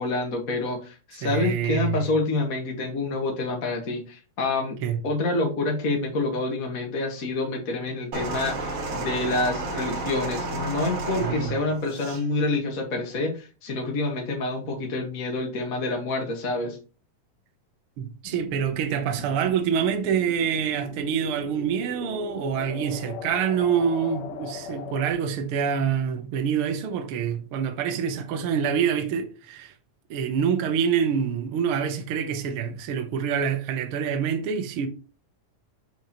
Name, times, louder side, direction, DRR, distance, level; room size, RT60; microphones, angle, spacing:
voice 1, 0.0-4.8 5.0-16.8, left 2 dB, 40° left, 1.3 m, -27 dB
voice 2, 1.2-2.0 4.8-5.0 11.2-11.5 18.0-29.7 30.1-34.9, right 7 dB, 65° right, 1.4 m, -26 dB
sound 1, 8.1-12.3 13.1-13.3, right 2 dB, 45° right, 2.4 m, -31 dB
sound 2, 18.2-25.1, left 7 dB, 70° left, 1.9 m, -40 dB
6.8 x 6.3 x 2.9 m
omnidirectional pair, 3.6 m